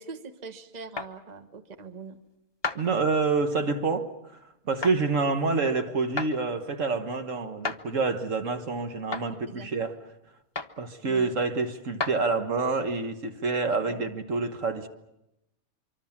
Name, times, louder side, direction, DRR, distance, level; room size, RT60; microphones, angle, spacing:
voice 1, 0.0-2.2 9.5-9.9 11.0-11.3 13.9-14.1, right 5 dB, 30° right, 1.2 m, -43 dB
sound 1, 1.0-1.1 2.6-2.8 4.8-5.0 6.2-6.3 7.6-7.8 9.1-9.3 10.5-10.8 12.0-12.2, left 3 dB, 20° left, 0.8 m, -31 dB
voice 2, 2.7-4.1 4.6-10.0 10.8-14.9, right 4 dB, 60° right, 1.7 m, -27 dB
25.0 x 24.5 x 7.3 m
omnidirectional pair, 1.5 m